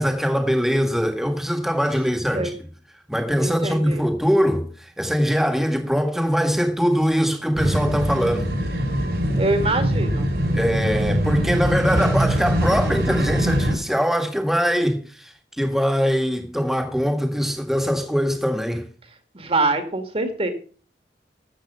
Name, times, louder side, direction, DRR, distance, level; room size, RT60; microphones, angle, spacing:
voice 1, 0.0-2.6 3.1-8.5 10.5-18.8, equal, ahead, 1.7 m, -22 dB
voice 2, 3.4-4.0 9.4-10.3 19.3-20.5, right 2 dB, 35° right, 2.0 m, -24 dB
sound 1, 7.6-13.7, equal, 65° right, 3.9 m, -22 dB
13.5 x 7.9 x 5.5 m
head